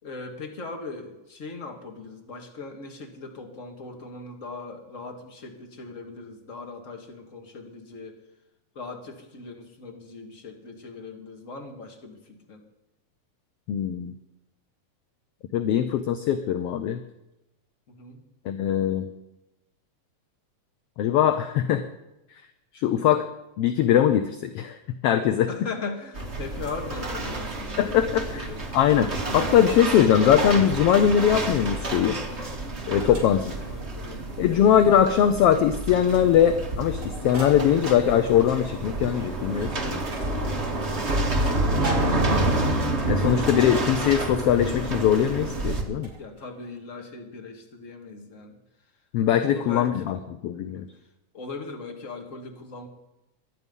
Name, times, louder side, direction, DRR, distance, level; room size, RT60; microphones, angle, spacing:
voice 1, 0.0-8.2 8.7-12.7 17.9-18.2 25.5-28.6 33.0-34.4 41.3-42.5 46.2-48.6 49.4-50.0 50.6-50.9 51.3-52.9, left 3 dB, 30° left, 3 dB, 2.2 m, -39 dB
voice 2, 13.7-14.1 15.5-17.0 18.4-19.1 21.0-21.8 22.7-23.3 23.6-24.8 25.0-25.5 27.8-28.5 28.7-32.2 32.9-33.4 34.4-37.0 37.2-40.0 43.1-46.1 49.1-50.2 50.4-50.9, left 9 dB, 70° left, 9 dB, 1.6 m, -21 dB
sound 1, 26.1-45.8, right 2 dB, 25° right, 1.8 m, -29 dB
sound 2, 33.0-46.7, right 2 dB, 70° right, 7.8 m, -41 dB
22.5 x 11.0 x 5.5 m, 0.93 s
omnidirectional pair, 3.3 m